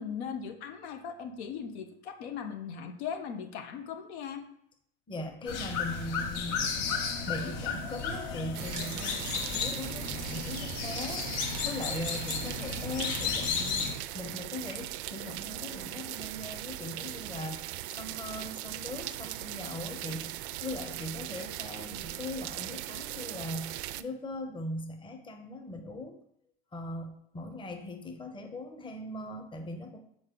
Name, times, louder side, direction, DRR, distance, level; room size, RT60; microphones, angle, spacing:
voice 1, 0.0-4.4, left 7 dB, 80° left, 6 dB, 1.0 m, -38 dB
voice 2, 5.1-6.8 7.2-17.6 18.0-26.2 26.7-30.0, left 1 dB, 15° left, 4 dB, 0.8 m, -40 dB
sound 1, 5.5-13.9, left 5 dB, 60° left, 1.5 m, -33 dB
sound 2, 8.5-24.0, right 15 dB, 80° right, 0.5 m, -39 dB
6.3 x 4.4 x 3.8 m, 0.70 s
supercardioid pair, 110°, 33 cm